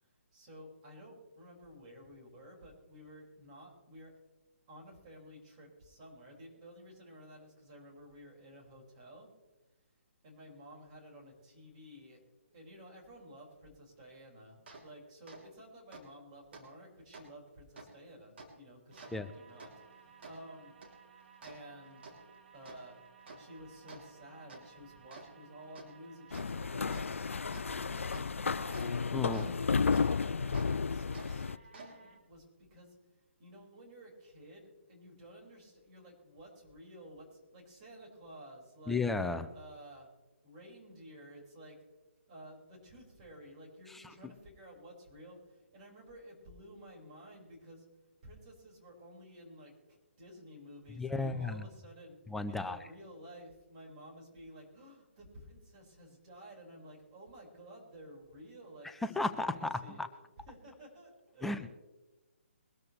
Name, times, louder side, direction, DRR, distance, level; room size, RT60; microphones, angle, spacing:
voice 1, 0.0-4.1 4.7-9.3 10.2-12.2 12.5-20.7 21.4-22.2 22.5-23.0 23.4-32.9 33.4-39.0 39.5-40.1 40.4-41.8 42.3-47.9 48.2-60.0 60.4-61.7, equal, 30° right, -3 dB, 5.5 m, -53 dB
sound 1, 14.7-14.8 15.3-15.4 15.9-16.0 16.5-16.6 17.1-17.2 17.8-17.9 18.4-18.5 18.9-29.5 29.9-30.0 30.5-30.7 31.1-32.2, right 3 dB, 50° right, 3.2 m, -53 dB
sound 2, 26.3-31.6, left 5 dB, 70° left, 0.4 m, -32 dB
voice 2, 29.1-29.5 38.9-39.5 43.9-44.0 51.0-51.6 52.3-52.8 59.0-60.1 61.4-61.7, left 3 dB, 5° left, 10 dB, 0.5 m, -34 dB
22.5 x 13.5 x 3.3 m, 1.1 s
figure-of-eight pair, 140°, 7 cm